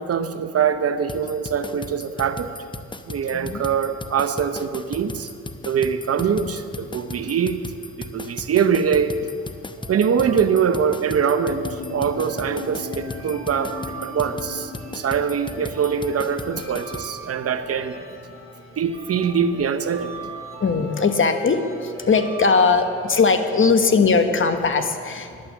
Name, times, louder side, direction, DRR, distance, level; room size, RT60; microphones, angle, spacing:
voice 1, 0.0-2.5 3.1-5.3 5.6-7.6 8.0-9.2 9.9-13.7 14.0-18.0 18.8-20.1, right 7 dB, 55° right, 10 dB, 0.9 m, -23 dB
sound 1, 1.1-17.1, left 2 dB, 15° left, 0.8 m, -36 dB
voice 2, 3.3-3.6 20.6-21.6 22.1-25.3, left 4 dB, 45° left, 7 dB, 1.2 m, -19 dB
sound 2, 9.4-23.8, right 3 dB, 20° right, 2.9 m, -41 dB
sound 3, 11.5-17.0, left 3 dB, 75° left, 1.5 m, -39 dB
11.0 x 9.6 x 7.6 m, 2.3 s
supercardioid pair, 55°, 29 cm